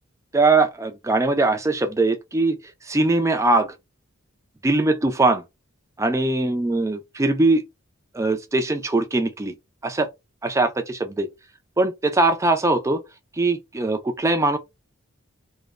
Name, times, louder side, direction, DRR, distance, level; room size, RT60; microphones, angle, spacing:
voice 1, 0.3-2.6 2.9-3.7 4.6-5.4 6.0-7.6 8.1-9.6 9.8-10.1 10.4-11.3 11.8-13.0 13.4-14.6, right 2 dB, 15° right, 0.4 m, -21 dB
2.5 x 2.1 x 2.4 m
head